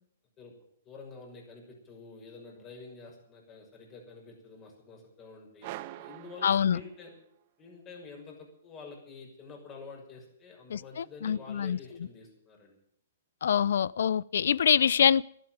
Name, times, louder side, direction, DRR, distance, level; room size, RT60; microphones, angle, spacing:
voice 1, 0.8-7.1 7.6-12.8, left 4 dB, 25° left, 1 dB, 6.2 m, -48 dB
sound 1, 5.6-7.4, right 16 dB, 45° right, 0.8 m, -44 dB
voice 2, 6.4-6.8 10.7-11.8 13.4-15.2, left 8 dB, 70° left, 22 dB, 0.5 m, -25 dB
13.0 x 11.5 x 9.4 m, 0.71 s
hypercardioid pair, 130°, 0 cm